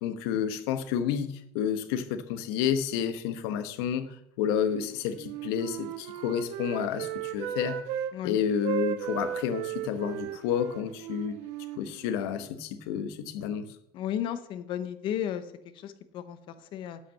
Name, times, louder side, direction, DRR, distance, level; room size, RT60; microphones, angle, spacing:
voice 1, 0.0-7.8 8.2-11.4 11.8-13.7, left 8 dB, 90° left, 10 dB, 1.1 m, -30 dB
Wind instrument woodwind instrument, 5.2-8.1 8.6-12.4, right 10 dB, 65° right, 1.2 m, -36 dB
voice 2, 13.9-15.5 15.7-17.0, left 10 dB, 40° left, 12 dB, 0.8 m, -34 dB
11.5 x 5.8 x 7.3 m, 0.77 s
cardioid pair, 170°, 13 cm